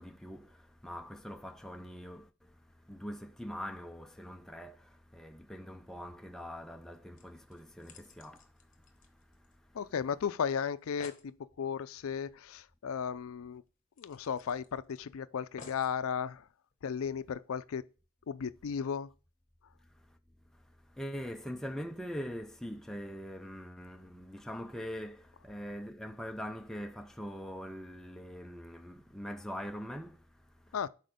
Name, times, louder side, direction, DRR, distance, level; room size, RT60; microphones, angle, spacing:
voice 1, 0.0-9.8 19.8-20.2 20.5-30.8, equal, ahead, 0.3 m, -43 dB
sound 1, 7.2-9.8 10.1-10.2 10.5-10.6 10.8-11.3 12.8-12.9 13.2-13.3 14.0-15.0 15.6-16.0 16.7-16.8, left 4 dB, 35° left, 1.1 m, -54 dB
voice 2, 9.7-13.6 14.0-16.4 16.8-17.8 18.3-19.1 30.7-30.9, left 7 dB, 70° left, 0.4 m, -35 dB
6.3 x 4.3 x 5.1 m
head